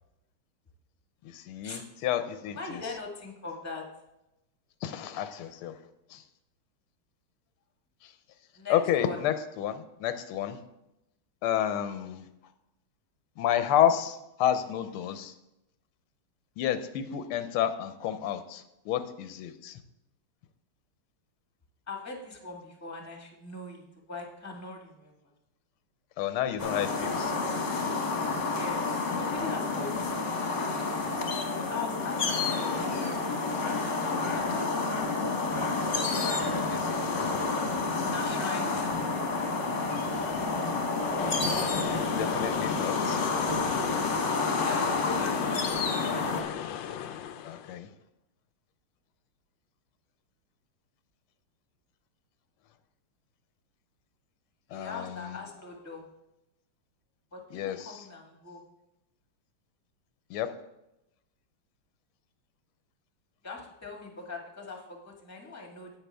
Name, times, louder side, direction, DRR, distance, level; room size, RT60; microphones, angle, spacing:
voice 1, 1.2-2.8 4.8-5.7 6.1-6.2 8.0-8.1 8.7-10.6 11.4-12.3 13.4-15.3 16.6-19.8 26.2-27.3 36.6-37.3 40.1-40.2 41.8-43.2 47.4-47.9 54.7-55.4 57.5-58.0 60.3-60.5, left 10 dB, 90° left, 10 dB, 1.6 m, -30 dB
voice 2, 2.5-3.9 8.6-9.2 21.9-25.1 28.5-30.6 31.5-32.8 33.5-33.6 34.0-34.8 38.0-39.2 42.8-43.0 44.6-46.2 54.7-56.0 57.3-58.6 63.4-65.9, left 4 dB, 10° left, 1 dB, 1.3 m, -41 dB
sound 1, 26.6-46.4, left 3 dB, 40° left, 1.3 m, -29 dB
sound 2, 41.2-47.8, left 9 dB, 75° left, 1.2 m, -36 dB
10.5 x 8.8 x 3.5 m, 0.89 s
omnidirectional pair, 2.3 m